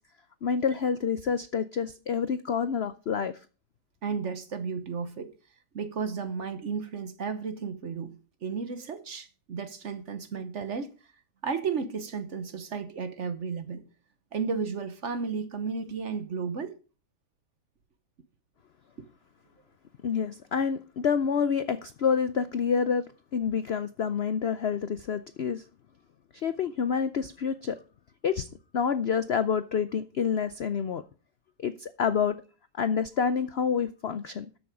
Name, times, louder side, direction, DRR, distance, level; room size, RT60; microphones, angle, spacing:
voice 1, 0.4-3.3 20.0-25.6 26.3-27.8 28.2-28.5 28.7-31.0 31.6-32.4 32.8-34.5, left 6 dB, 75° left, 0.5 m, -28 dB
voice 2, 4.0-5.3 5.7-8.2 8.4-10.9 11.4-13.9 14.3-16.7 19.0-19.1, right 5 dB, 50° right, 1.1 m, -33 dB
13.0 x 7.1 x 4.9 m
omnidirectional pair, 1.9 m